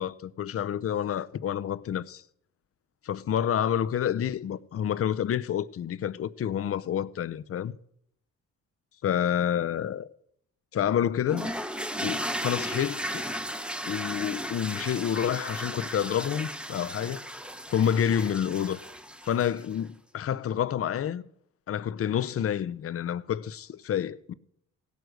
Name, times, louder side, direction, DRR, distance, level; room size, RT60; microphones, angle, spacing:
voice 1, 0.0-2.2 3.0-7.8 9.0-10.1 10.7-11.5 12.0-13.2 13.9-17.2 17.7-18.8 19.2-21.2 21.7-24.3, left 9 dB, 50° left, 0.6 m, -28 dB
sound 1, 11.3-19.8, equal, 5° right, 1.0 m, -35 dB
16.5 x 9.4 x 6.5 m
cardioid pair, 90°, 30 cm